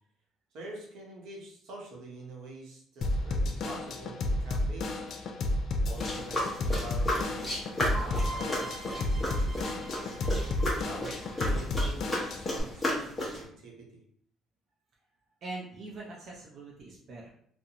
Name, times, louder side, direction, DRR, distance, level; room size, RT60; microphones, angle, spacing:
voice 1, 0.5-5.1 5.8-7.5 8.2-9.7 10.7-14.0, right 2 dB, 75° right, -2 dB, 0.8 m, -45 dB
Drum kit / Drum, 3.0-12.6, left 1 dB, 55° left, 0.3 m, -31 dB
sound 1, 6.0-13.4, left 1 dB, 15° left, 0.8 m, -34 dB
sound 2, 7.9-11.7, right 1 dB, 5° right, 1.1 m, -42 dB
voice 2, 15.4-17.3, right 2 dB, 45° right, -3 dB, 0.5 m, -44 dB
2.5 x 2.1 x 2.8 m, 0.66 s
cardioid pair, 135°, 0 cm